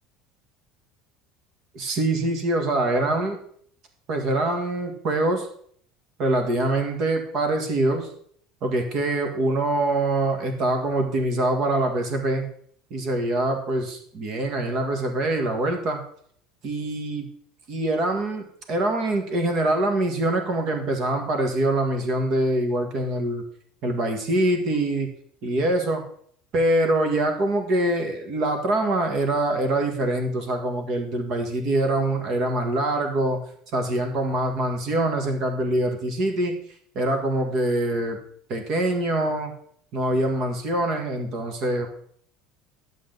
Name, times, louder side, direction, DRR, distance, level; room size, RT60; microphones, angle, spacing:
voice 1, 1.7-3.4 4.1-5.5 6.2-8.1 8.6-12.5 12.9-16.0 16.6-17.3 17.7-23.4 23.8-25.1 25.4-26.0 26.5-33.4 33.7-36.5 37.0-38.2 38.5-39.5 39.9-41.9, right 1 dB, 40° right, 5 dB, 1.7 m, -24 dB
11.5 x 7.4 x 4.0 m, 0.62 s
cardioid pair, 170°, 0 cm